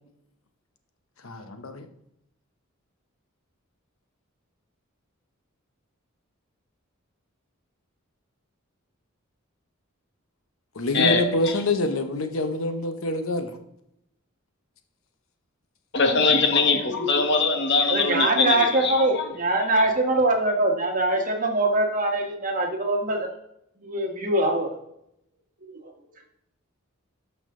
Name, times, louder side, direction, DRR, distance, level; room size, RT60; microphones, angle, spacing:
voice 1, 1.2-1.9 10.7-13.6, left 2 dB, 75° left, 7 dB, 0.9 m, -26 dB
voice 2, 15.9-18.9 19.8-19.9, left 4 dB, 55° left, 5 dB, 1.3 m, -21 dB
voice 3, 17.9-23.3 23.8-24.7 25.6-25.8, right 2 dB, 40° right, 2 dB, 1.5 m, -23 dB
12.0 x 5.8 x 3.7 m, 0.78 s
head